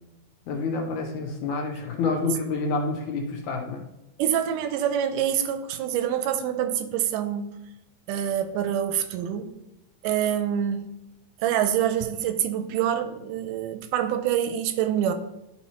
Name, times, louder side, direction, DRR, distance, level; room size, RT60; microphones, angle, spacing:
voice 1, 0.5-3.8, left 3 dB, 75° left, 2 dB, 2.3 m, -28 dB
voice 2, 4.2-7.6 8.1-9.5 10.0-10.9 11.4-15.1, right 10 dB, 85° right, 9 dB, 2.1 m, -26 dB
11.5 x 4.2 x 3.0 m, 0.91 s
omnidirectional pair, 3.8 m